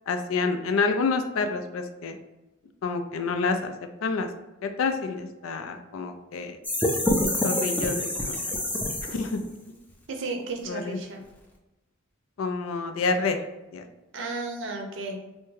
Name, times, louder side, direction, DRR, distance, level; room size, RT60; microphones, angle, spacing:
voice 1, 0.1-2.2 2.8-3.7 4.0-4.3 4.6-6.6 7.4-8.4 9.1-9.4 10.7-11.0 12.4-13.4 13.7-13.9, left 4 dB, 90° left, 6 dB, 0.4 m, -28 dB
sound 1, 6.6-9.5, left 1 dB, 10° left, 0.3 m, -26 dB
voice 2, 10.1-11.2 14.1-15.2, right 3 dB, 65° right, 2 dB, 0.5 m, -33 dB
3.4 x 2.1 x 3.1 m, 1.1 s
head